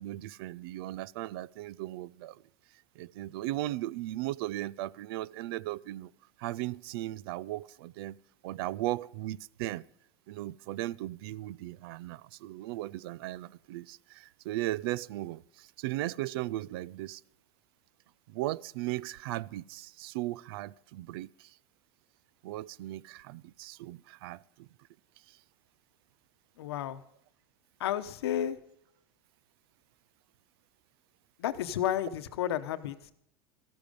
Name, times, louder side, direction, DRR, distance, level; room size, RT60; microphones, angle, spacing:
voice 1, 0.0-2.4 3.0-6.1 6.4-8.2 8.4-9.8 10.3-17.2 18.3-21.6 22.4-24.7 25.3-25.4, right 16 dB, 70° right, 0.4 m, -37 dB
voice 2, 26.6-27.0 27.8-28.6 31.4-33.0, left 11 dB, 90° left, 1.0 m, -31 dB
14.0 x 11.5 x 5.2 m
supercardioid pair, 130°, 13 cm